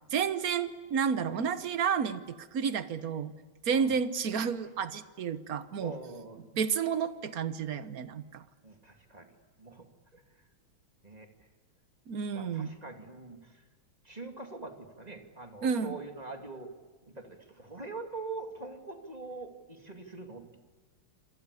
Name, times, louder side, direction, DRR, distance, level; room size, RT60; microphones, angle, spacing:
voice 1, 0.1-3.3 3.6-5.9 6.5-8.4 12.1-12.7 15.6-16.0, right 6 dB, 50° right, 12 dB, 1.4 m, -31 dB
voice 2, 5.8-6.4 8.6-9.3 9.6-10.2 11.0-11.5 12.3-13.6 14.0-16.7 17.1-20.6, right 3 dB, 20° right, 4 dB, 2.4 m, -44 dB
27.0 x 27.0 x 8.3 m, 1.3 s
omnidirectional pair, 2.3 m